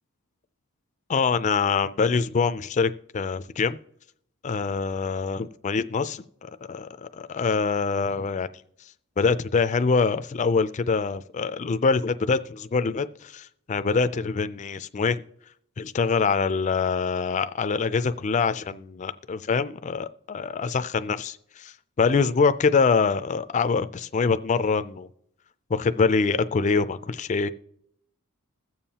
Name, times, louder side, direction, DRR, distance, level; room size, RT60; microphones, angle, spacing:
voice 1, 1.1-3.8 4.4-6.2 6.7-8.5 9.2-15.2 15.8-25.1 25.7-27.5, left 5 dB, 30° left, 12 dB, 0.3 m, -24 dB
21.0 x 7.2 x 2.8 m, 0.72 s
head